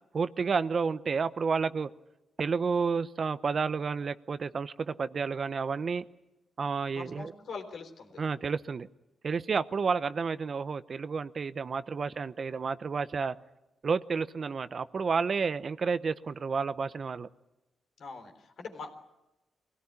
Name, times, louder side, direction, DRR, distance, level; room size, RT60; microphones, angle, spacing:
voice 1, 0.1-1.9 2.4-6.0 6.6-7.3 8.2-8.9 9.2-13.3 13.8-17.3, right 5 dB, 55° right, 14 dB, 0.8 m, -30 dB
voice 2, 6.9-8.2 18.0-18.9, left 4 dB, 75° left, 5 dB, 3.7 m, -43 dB
23.5 x 17.0 x 9.9 m, 0.98 s
cardioid pair, 70°, 0 cm